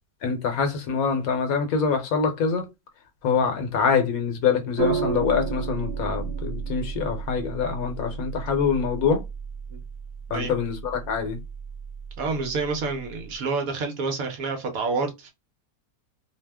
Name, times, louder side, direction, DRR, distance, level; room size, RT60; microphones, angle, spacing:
voice 1, 0.2-2.7 3.2-9.2 10.3-11.4, left 6 dB, 65° left, 1.0 m, -25 dB
sound 1, 4.8-13.3, right 7 dB, 90° right, 1.2 m, -33 dB
voice 2, 12.2-15.3, right 4 dB, 65° right, 1.0 m, -28 dB
2.8 x 2.1 x 3.3 m
omnidirectional pair, 1.7 m